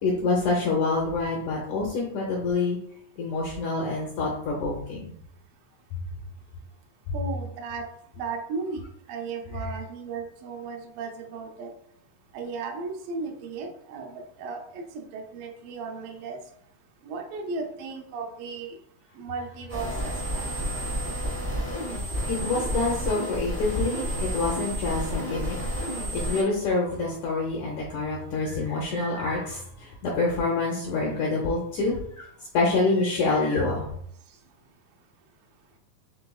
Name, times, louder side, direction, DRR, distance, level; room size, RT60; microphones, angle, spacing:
voice 1, 0.0-2.8 3.2-5.1 22.3-25.6 26.1-32.3 32.5-33.9, left 3 dB, 80° left, -2 dB, 1.7 m, -26 dB
voice 2, 7.1-7.9 8.2-8.8 9.1-11.7 12.3-16.4 17.0-18.7 19.2-20.5, right 4 dB, 75° right, 2 dB, 2.2 m, -35 dB
sound 1, 19.7-26.4, equal, 45° right, 0.4 m, -30 dB
5.8 x 3.7 x 2.3 m, 0.70 s
omnidirectional pair, 4.2 m